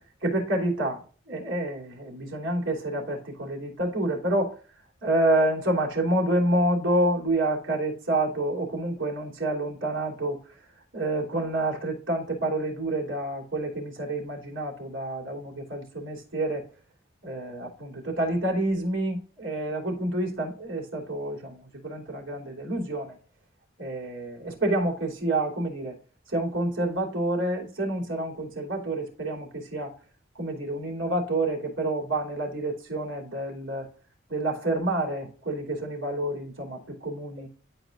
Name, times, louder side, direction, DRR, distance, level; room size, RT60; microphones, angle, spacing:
voice 1, 0.2-4.6 5.0-10.6 10.9-16.7 17.2-23.2 23.8-25.9 26.3-29.9 30.3-33.9 34.3-37.5, right 1 dB, 85° right, 3.1 m, -28 dB
11.5 x 5.0 x 2.5 m
head